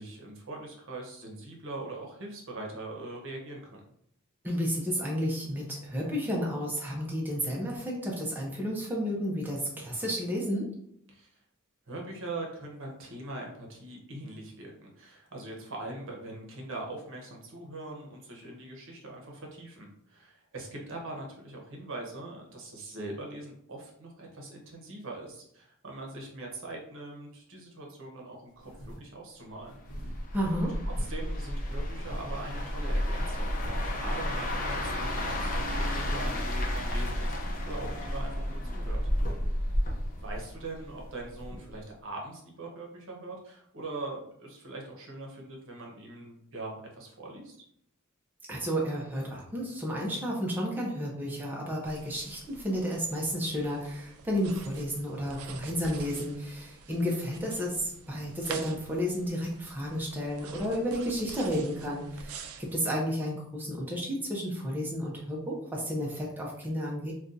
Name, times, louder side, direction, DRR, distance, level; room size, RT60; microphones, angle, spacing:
voice 1, 0.0-3.8 11.1-11.4 11.9-29.8 31.0-39.0 40.2-47.6, right 2 dB, 65° right, 0 dB, 0.8 m, -42 dB
voice 2, 4.4-10.7 30.3-30.8 48.5-67.1, equal, 10° right, -3 dB, 0.5 m, -32 dB
sound 1, 28.6-29.1 29.7-31.3 31.6-32.6 32.9-34.0 34.2-34.3 34.6-35.6 36.2-36.5 37.0-37.1 37.5-38.2 38.9-39.5 39.7-40.6 41.0-41.8, equal, 75° left, 0.8 m, -44 dB
sound 2, 30.0-41.1 41.4-41.7, equal, 40° left, 0.6 m, -31 dB
sound 3, 51.8-62.7, right 5 dB, 85° right, 0.4 m, -47 dB
2.6 x 2.3 x 3.8 m, 0.71 s
head